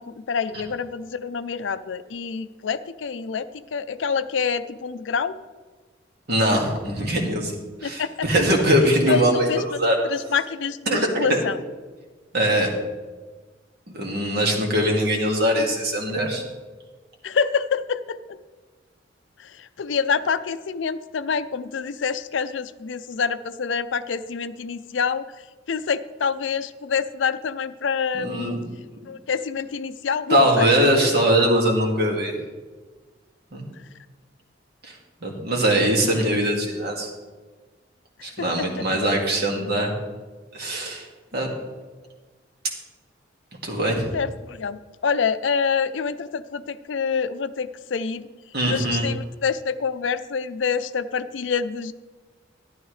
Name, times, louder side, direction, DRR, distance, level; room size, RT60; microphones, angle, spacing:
voice 1, 0.0-5.4 7.8-8.3 9.1-9.8 10.1-11.6 17.2-18.4 19.4-25.3 25.7-28.6 29.1-30.7 38.4-38.7 44.1-48.3 48.7-51.9, left 6 dB, 75° left, 14 dB, 0.5 m, -27 dB
voice 2, 6.3-7.5 7.8-10.0 10.9-11.4 12.3-12.7 13.9-16.4 28.1-28.7 30.3-32.4 33.5-33.7 34.8-35.0 35.2-37.1 38.2-39.9 40.5-41.1 41.3-41.5 43.6-44.1 48.5-49.0, right 1 dB, 60° right, 1 dB, 2.1 m, -21 dB
12.5 x 11.0 x 3.2 m, 1.3 s
head